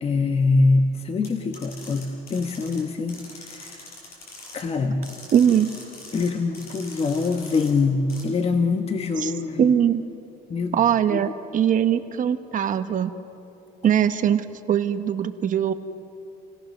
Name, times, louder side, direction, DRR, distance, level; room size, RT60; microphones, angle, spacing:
voice 1, 0.0-3.2 3.5-3.7 4.5-5.0 6.1-9.7 10.5-10.7 11.1-11.2, left 3 dB, 35° left, 5 dB, 1.3 m, -23 dB
sound 1, 1.2-2.8 3.1-4.6 5.0-6.3 6.5-7.7 8.1-8.2, left 2 dB, 65° left, 7.2 m, -43 dB
voice 2, 5.3-5.7 9.2-9.3 9.6-10.0 10.7-13.1 13.8-15.7, right 9 dB, 50° right, 10 dB, 1.1 m, -21 dB
28.5 x 17.5 x 6.5 m, 2.6 s
cardioid pair, 110°, 17 cm